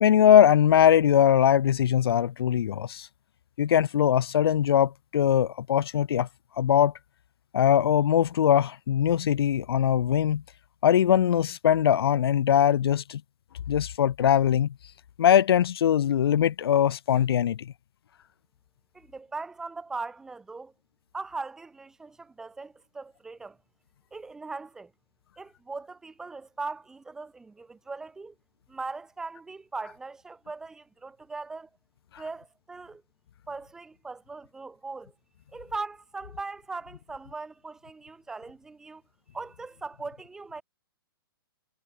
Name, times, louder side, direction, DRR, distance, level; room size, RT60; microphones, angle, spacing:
voice 1, 0.0-3.1 3.6-6.3 6.6-6.9 7.5-10.4 10.8-13.2 13.7-14.7 15.2-17.7, left 10 dB, 85° left, 0.4 m, -21 dB
voice 2, 18.9-20.7 21.1-23.6 24.1-24.9 25.4-28.3 28.7-31.7 32.2-33.0 33.5-35.1 35.5-39.0 39.3-40.6, right 3 dB, 5° right, 0.5 m, -39 dB
hypercardioid pair, 165°, 12 cm